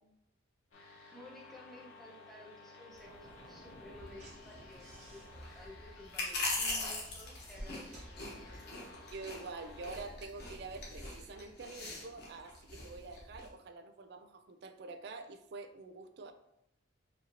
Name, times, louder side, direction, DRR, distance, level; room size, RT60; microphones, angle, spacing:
sound 1, 0.7-10.1, left 3 dB, 90° left, 0.9 m, -56 dB
voice 1, 0.7-9.5, left 1 dB, ahead, -3 dB, 0.6 m, -55 dB
sound 2, 2.9-13.5, left 2 dB, 55° left, 1.1 m, -42 dB
Slam / Knock, 3.0-8.8, equal, 40° right, 1.4 m, -57 dB
voice 2, 9.1-16.3, right 3 dB, 55° right, 9 dB, 0.4 m, -47 dB
5.0 x 2.8 x 2.9 m, 0.81 s
head